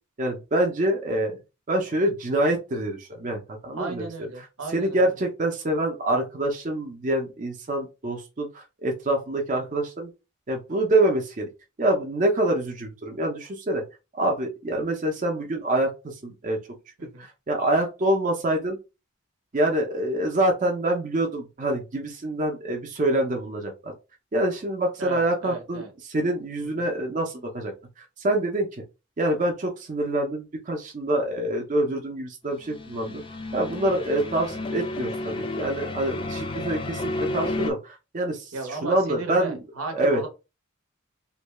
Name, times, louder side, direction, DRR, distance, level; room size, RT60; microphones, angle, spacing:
voice 1, 0.2-1.4 1.7-4.1 4.7-10.1 10.5-11.5 11.8-13.8 14.1-16.6 17.2-18.8 19.5-23.9 24.3-28.8 29.2-33.2 33.5-39.6 39.9-40.2, right 1 dB, 35° right, 1 dB, 0.5 m, -26 dB
voice 2, 3.8-5.0 17.0-17.3 25.0-25.9 38.5-40.3, right 3 dB, 90° right, 5 dB, 0.8 m, -35 dB
sound 1, 32.6-37.7, left 2 dB, 25° left, 0.3 m, -32 dB
2.5 x 2.2 x 3.0 m, 0.28 s
head